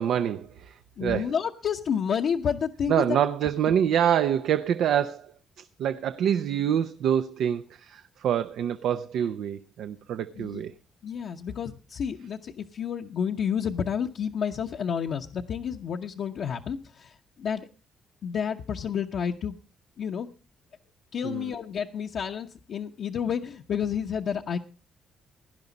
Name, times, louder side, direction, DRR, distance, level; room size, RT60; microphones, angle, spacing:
voice 1, 0.0-1.3 2.9-10.7 21.2-21.5, right 9 dB, 75° right, 0.6 m, -26 dB
voice 2, 1.0-3.2 10.3-10.6 11.0-17.7 18.2-19.6 20.0-20.3 21.1-24.6, left 7 dB, 65° left, 0.9 m, -30 dB
17.0 x 11.0 x 4.0 m
cardioid pair, 90°, 0 cm